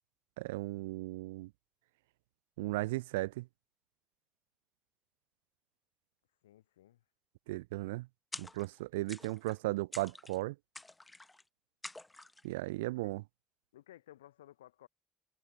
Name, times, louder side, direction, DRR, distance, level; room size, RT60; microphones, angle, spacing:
voice 1, 0.4-1.5 2.6-3.5 7.5-8.1 8.4-10.6 12.4-13.2, right 20 dB, 80° right, 0.5 m, -36 dB
voice 2, 6.4-7.0 12.9-13.2 13.7-14.9, left 13 dB, 85° left, 4.1 m, -57 dB
sound 1, 8.3-8.8 9.1-9.6 9.9-10.4 10.8-11.4 11.8-12.5, left 2 dB, 15° left, 1.9 m, -48 dB
hypercardioid pair, 50°, 0 cm